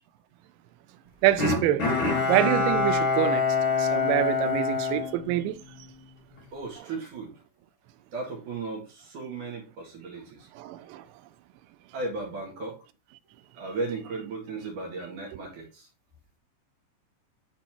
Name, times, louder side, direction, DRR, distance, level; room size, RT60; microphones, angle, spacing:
voice 1, 1.2-1.8 2.3-3.4 3.8-5.5 10.6-11.0, right 14 dB, 85° right, 2.6 m, -25 dB
Bowed string instrument, 1.4-5.9 6.3-6.4, left 4 dB, 45° left, 1.6 m, -26 dB
voice 2, 6.5-7.4 8.1-10.5 11.9-12.8 13.2-15.9, right 3 dB, 50° right, 2.8 m, -36 dB
11.5 x 4.2 x 4.4 m
omnidirectional pair, 5.8 m